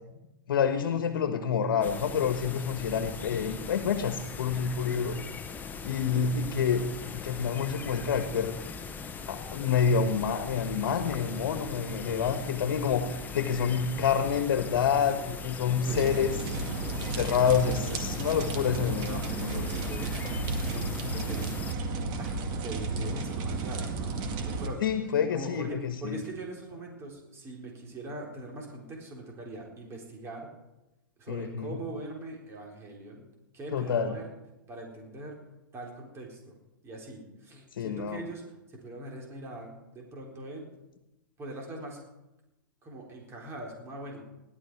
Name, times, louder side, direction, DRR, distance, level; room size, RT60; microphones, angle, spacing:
voice 1, 0.5-5.2 5.8-6.8 7.1-8.5 9.3-16.3 17.0-19.7 24.8-26.2 31.3-31.8 33.7-34.1 37.7-38.2, left 7 dB, 75° left, 8 dB, 1.4 m, -28 dB
sound 1, 1.8-21.7, left 5 dB, 15° left, 1.1 m, -40 dB
voice 2, 15.8-16.3 19.0-20.1 20.7-21.5 22.2-24.1 24.4-24.8 25.3-30.5 31.2-33.2 33.5-34.3 34.7-35.4 35.7-36.5 36.8-38.4 38.7-40.7 41.4-42.0 42.8-44.3, right 2 dB, 25° right, 0 dB, 3.9 m, -42 dB
sound 2, 15.9-24.7, right 3 dB, 40° right, 2.1 m, -33 dB
17.0 x 12.0 x 4.8 m, 0.95 s
hypercardioid pair, 125°, 11 cm